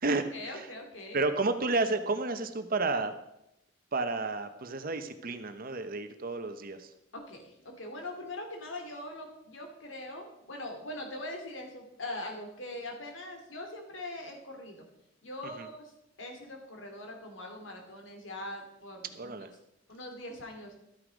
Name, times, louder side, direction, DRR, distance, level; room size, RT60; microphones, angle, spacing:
voice 1, 0.1-1.2 7.1-14.8 15.2-15.9 16.2-19.3 19.9-20.7, left 1 dB, 80° left, 3 dB, 2.7 m, -42 dB
voice 2, 1.1-3.1 3.9-6.9 15.5-15.7 19.1-19.5, right 3 dB, 50° right, 9 dB, 0.9 m, -31 dB
13.0 x 9.6 x 5.2 m, 0.83 s
head